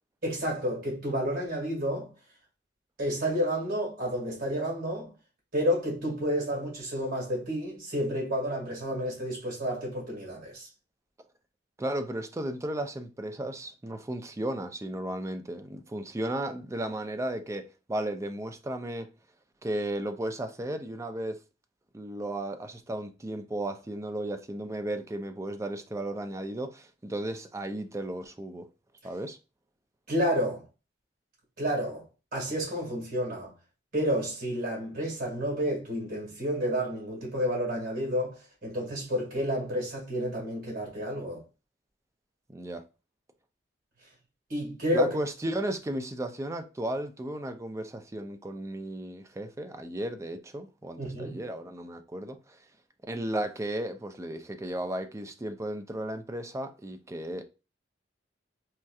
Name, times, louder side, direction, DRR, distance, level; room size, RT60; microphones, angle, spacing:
voice 1, 0.2-2.1 3.0-5.1 5.5-10.7 30.1-30.6 31.6-32.1 32.3-33.5 33.9-41.4 44.5-45.2 51.0-51.4, equal, 55° right, 2.0 m, -30 dB
voice 2, 11.8-19.1 19.6-21.4 21.9-28.7 29.0-29.4 42.5-42.8 44.9-52.6 53.1-57.4, right 1 dB, 15° right, 0.4 m, -34 dB
4.3 x 2.7 x 2.3 m
head